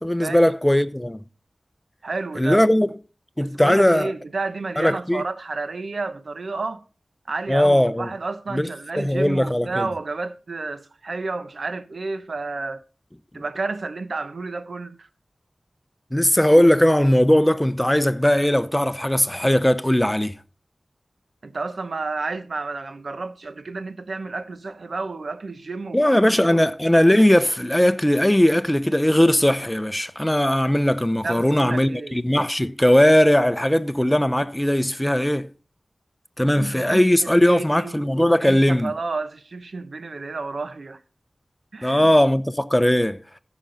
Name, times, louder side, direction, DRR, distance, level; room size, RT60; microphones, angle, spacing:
voice 1, 0.0-1.2 2.4-2.9 3.4-4.1 4.8-5.2 7.5-8.1 8.5-8.7 9.0-9.9 16.1-20.4 25.9-35.5 36.4-38.9 41.8-43.2, left 1 dB, 10° left, 0.7 m, -19 dB
voice 2, 2.0-2.6 3.4-6.8 7.3-12.8 13.3-15.1 21.4-26.6 31.2-32.2 36.5-37.9 38.4-41.0 41.7-42.1, right 3 dB, 75° right, 0.9 m, -31 dB
14.5 x 6.2 x 4.0 m
wide cardioid pair, 55°, 0 cm